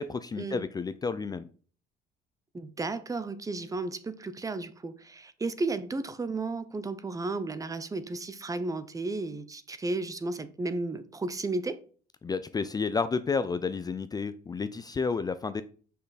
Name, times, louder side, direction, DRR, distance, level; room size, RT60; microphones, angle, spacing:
voice 1, 0.0-1.4 12.2-15.6, left 5 dB, 25° left, 0.4 m, -31 dB
voice 2, 2.5-11.8, right 3 dB, 20° right, 0.7 m, -33 dB
6.3 x 5.6 x 4.1 m
cardioid pair, 110°, 17 cm